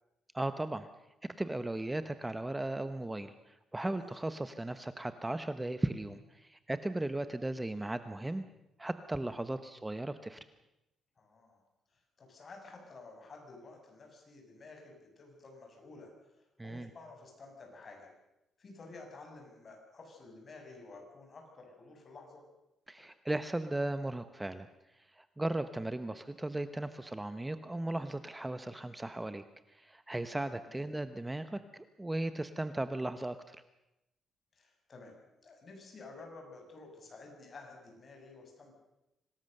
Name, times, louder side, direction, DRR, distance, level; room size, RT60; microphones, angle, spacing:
voice 1, 0.3-0.9 1.2-8.4 8.8-10.4 16.6-16.9 22.9-24.7 25.0-33.6, right 1 dB, 10° right, 11 dB, 0.8 m, -37 dB
voice 2, 11.2-11.6 11.9-16.1 16.6-18.1 18.6-22.4 22.9-23.1 30.7-30.8 34.5-38.8, left 3 dB, 35° left, 2 dB, 6.9 m, -52 dB
25.5 x 19.0 x 6.6 m, 0.93 s
cardioid pair, 125°, 0 cm